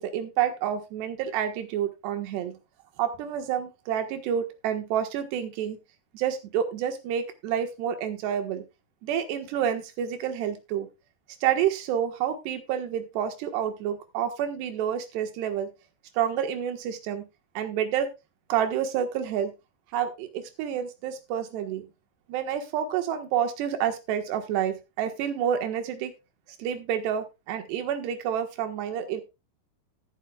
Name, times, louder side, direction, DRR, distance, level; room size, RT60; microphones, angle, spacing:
voice 1, 0.0-2.6 3.0-5.8 6.1-8.6 9.0-10.9 11.4-15.7 16.2-17.2 17.6-18.1 18.5-19.5 19.9-21.8 22.3-26.1 26.6-29.2, right 9 dB, 75° right, 7 dB, 3.6 m, -29 dB
17.5 x 9.9 x 2.4 m, 0.25 s
omnidirectional pair, 4.9 m